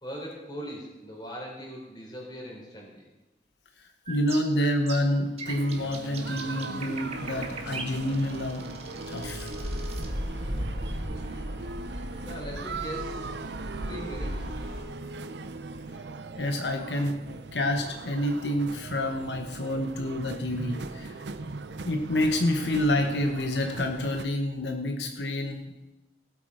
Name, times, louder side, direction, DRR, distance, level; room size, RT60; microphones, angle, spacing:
voice 1, 0.0-3.1 12.2-13.4 13.8-14.5, equal, 25° left, -1 dB, 3.9 m, -40 dB
voice 2, 4.1-8.7 9.1-9.5 16.4-21.1 21.9-25.6, left 1 dB, 85° left, 4 dB, 1.2 m, -28 dB
sound 1, 4.1-10.1, right 5 dB, 35° right, 1.6 m, -40 dB
sound 2, 5.4-24.2, right 3 dB, 80° right, 0.7 m, -40 dB
sound 3, 7.1-14.8, equal, 65° right, 4.0 m, -37 dB
17.0 x 8.3 x 5.0 m, 1.0 s
head